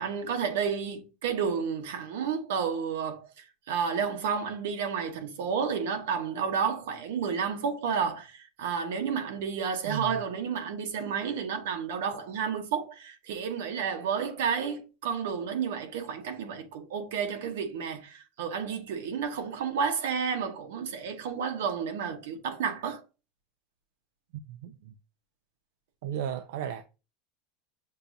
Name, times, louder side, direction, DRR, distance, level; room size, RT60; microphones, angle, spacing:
voice 1, 0.0-23.0, right 6 dB, 85° right, 0.9 m, -31 dB
voice 2, 9.8-10.2 24.3-24.9 26.0-26.8, right 9 dB, 70° right, 0.3 m, -35 dB
6.6 x 2.3 x 2.6 m
supercardioid pair, 180°, 0 cm